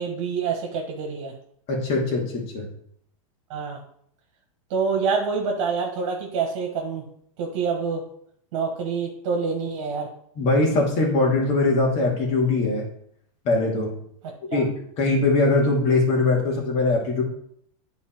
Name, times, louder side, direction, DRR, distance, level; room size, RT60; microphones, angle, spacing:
voice 1, 0.0-1.3 3.5-3.8 4.7-7.0 7.4-8.0 8.5-10.1 14.2-14.7, right 5 dB, 60° right, 1 dB, 1.6 m, -27 dB
voice 2, 1.7-2.7 10.4-12.9 13.4-13.9 14.5-14.7 15.0-17.2, left 3 dB, 35° left, -2 dB, 2.3 m, -21 dB
9.7 x 4.2 x 4.5 m, 0.68 s
supercardioid pair, 135°, 18 cm